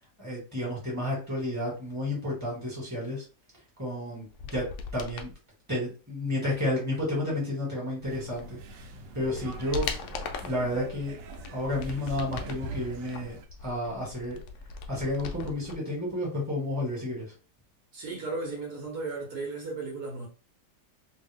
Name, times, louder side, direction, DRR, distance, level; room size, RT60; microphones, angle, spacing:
voice 1, 0.2-3.2 3.8-4.2 4.5-4.6 4.9-5.3 5.7-8.6 9.1-10.1 10.4-11.1 11.5-13.4 13.6-14.4 14.9-17.2, left 1 dB, 10° right, 1.5 m, -31 dB
sound 1, 4.3-5.3 8.4-8.5 9.0-10.6 11.2-12.7 13.1-15.8 16.0-16.1, left 5 dB, 70° left, 0.7 m, -38 dB
sound 2, 8.0-13.5, right 3 dB, 90° right, 1.2 m, -43 dB
voice 2, 17.9-20.3, right 3 dB, 70° right, 1.3 m, -35 dB
2.8 x 2.7 x 3.4 m
omnidirectional pair, 1.8 m